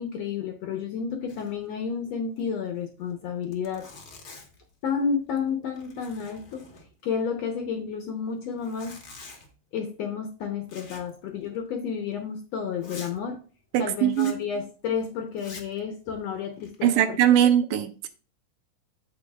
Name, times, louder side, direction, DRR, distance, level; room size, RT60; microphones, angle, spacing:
voice 1, 0.0-3.9 4.8-6.7 7.0-9.0 9.7-13.4 13.8-17.2 17.7-17.8, left 6 dB, 70° left, 1.6 m, -31 dB
Zipper (clothing), 1.3-1.7 1.9-2.0 2.4-2.5 3.1-3.2 3.4-4.7 5.2-5.5 5.7-7.2 8.5-9.5 10.7-11.2 11.5-11.6 12.1-12.2 12.8-13.2 14.1-14.4 15.3-15.8 16.4-17.0, left 3 dB, 50° left, 1.1 m, -47 dB
voice 2, 13.7-14.3 16.8-18.1, right 10 dB, 80° right, 2.3 m, -21 dB
14.5 x 4.8 x 2.3 m
omnidirectional pair, 3.8 m